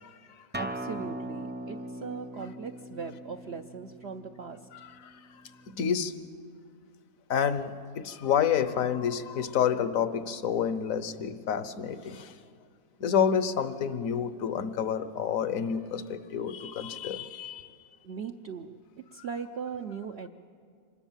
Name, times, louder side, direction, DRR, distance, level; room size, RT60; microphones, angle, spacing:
voice 1, 0.0-0.5 5.0-5.1 5.7-6.1 7.3-12.3 13.0-17.7, left 8 dB, 65° left, 13 dB, 1.3 m, -29 dB
Acoustic guitar, 0.5-5.7, right 1 dB, 15° right, 0.3 m, -40 dB
voice 2, 0.6-4.6 18.0-18.7 19.1-20.3, right 6 dB, 55° right, 4 dB, 0.8 m, -39 dB
25.5 x 19.5 x 7.4 m, 2.2 s
omnidirectional pair, 1.6 m